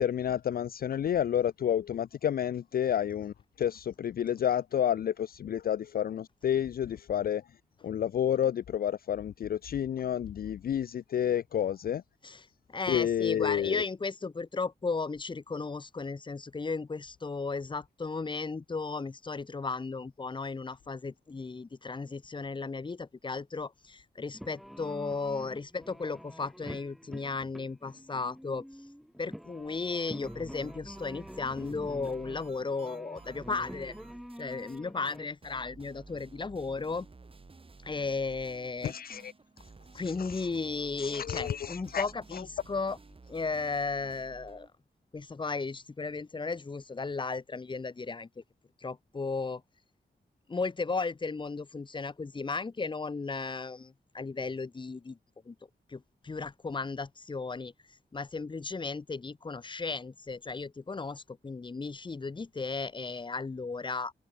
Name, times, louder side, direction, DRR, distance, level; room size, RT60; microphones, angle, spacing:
voice 1, 0.0-7.4 7.8-12.0 12.9-13.8 38.8-39.3 40.1-40.5 41.0-42.4, left 9 dB, 60° left, 0.4 m, -30 dB
voice 2, 12.2-28.6 29.2-33.9 34.4-37.1 37.8-38.9 39.9-43.0 43.3-44.7 45.1-48.4 48.8-49.6 50.5-55.2 55.4-55.5 55.9-57.7 58.1-64.1, left 4 dB, 25° left, 1.0 m, -35 dB
sound 1, 24.3-35.3, equal, ahead, 1.5 m, -47 dB
sound 2, 30.2-34.8 35.0-35.2 35.4-44.7, right 3 dB, 30° right, 4.2 m, -53 dB
wide cardioid pair, 130°, 18 cm